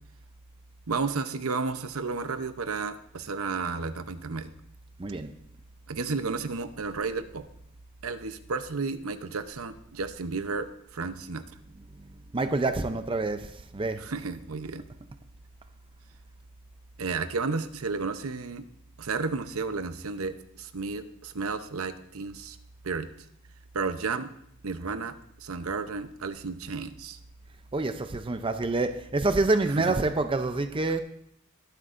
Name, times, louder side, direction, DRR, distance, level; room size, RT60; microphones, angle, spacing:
voice 1, 0.9-4.5 5.9-7.4 8.0-10.7 10.9-11.4 14.0-14.8 17.0-18.7 19.0-22.6 22.8-23.1 23.7-24.3 24.6-27.2 29.8-29.9, right 4 dB, 85° right, 0.8 m, -32 dB
voice 2, 5.0-5.3 12.0-14.1 27.7-31.0, right 2 dB, 25° right, 0.5 m, -27 dB
21.0 x 8.1 x 2.6 m
head